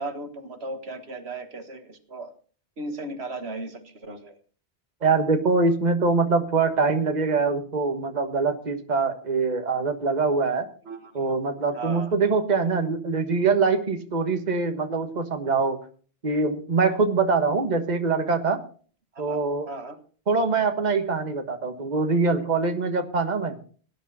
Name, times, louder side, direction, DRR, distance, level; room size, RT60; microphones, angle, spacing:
voice 1, 0.0-2.3 2.8-4.3 10.9-11.1 11.7-12.1 19.2-19.4 19.7-20.0 22.4-22.5, right 2 dB, 75° right, 8 dB, 1.8 m, -36 dB
voice 2, 5.0-10.7 11.1-15.8 16.2-18.6 19.2-19.7 20.3-23.5, right 4 dB, 40° right, 6 dB, 1.5 m, -23 dB
19.0 x 10.0 x 4.1 m, 0.42 s
omnidirectional pair, 1.1 m